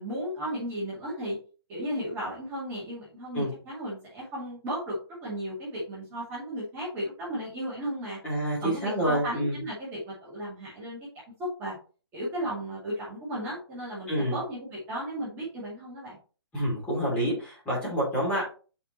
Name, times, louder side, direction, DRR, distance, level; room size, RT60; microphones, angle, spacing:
voice 1, 0.0-1.4 1.7-8.2 8.6-11.0 11.4-11.8 12.1-16.2, equal, 15° right, -7 dB, 2.4 m, -35 dB
voice 2, 8.2-9.6 14.1-14.4 16.5-18.4, equal, 10° left, -6 dB, 2.8 m, -28 dB
6.0 x 5.3 x 3.1 m, 0.37 s
hypercardioid pair, 165°, 14 cm